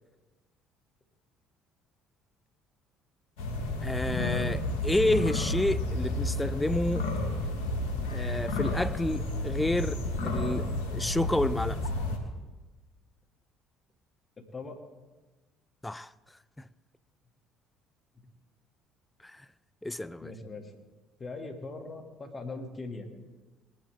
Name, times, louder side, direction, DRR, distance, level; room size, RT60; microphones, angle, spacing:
sound 1, 3.4-12.2, left 2 dB, 75° left, 1.9 m, -31 dB
voice 1, 3.8-7.1 8.1-11.8 15.8-16.1 16.6-16.7 19.2-19.4 19.8-20.3, left 1 dB, 10° left, 0.5 m, -30 dB
voice 2, 20.2-20.7 21.2-23.1, left 3 dB, 35° left, 2.7 m, -40 dB
20.5 x 12.0 x 3.8 m
hypercardioid pair, 60°, 0 cm